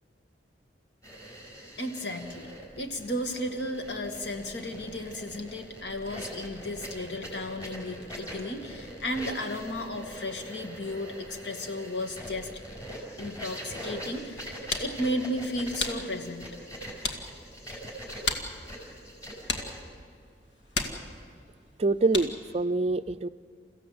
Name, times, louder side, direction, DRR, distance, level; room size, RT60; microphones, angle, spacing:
sound 1, 1.0-19.8, right 1 dB, 20° left, 5.6 m, -42 dB
voice 1, 1.8-12.5 13.2-16.5, left 1 dB, 70° left, 5 dB, 2.2 m, -34 dB
sound 2, 14.3-22.6, left 3 dB, 85° left, 2.1 m, -37 dB
voice 2, 21.8-23.3, right 3 dB, 35° right, 12 dB, 0.5 m, -25 dB
29.0 x 15.5 x 7.9 m, 2.3 s
head